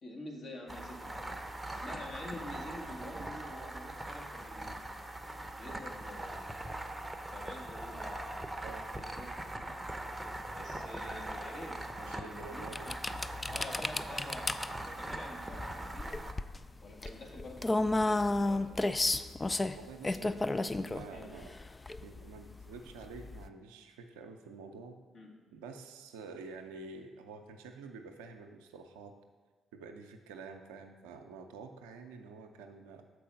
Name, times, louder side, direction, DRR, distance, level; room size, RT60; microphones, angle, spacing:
voice 1, 0.0-1.4 1.7-4.8 5.6-8.2 8.9-9.3 10.6-12.9 13.5-16.2 16.8-19.1 20.0-20.4 21.1-21.5 25.1-25.3, left 1 dB, 50° left, -1 dB, 1.4 m, -48 dB
sound 1, 0.7-16.3, right 1 dB, 15° right, 0.7 m, -41 dB
voice 2, 12.0-13.0 19.7-21.5 22.0-25.0 25.5-29.1 29.7-33.0, right 4 dB, 80° right, 5 dB, 0.5 m, -48 dB
sound 2, 12.7-23.5, left 2 dB, 25° left, 0.3 m, -33 dB
6.8 x 4.6 x 5.2 m, 1.5 s
hypercardioid pair, 40°, 0 cm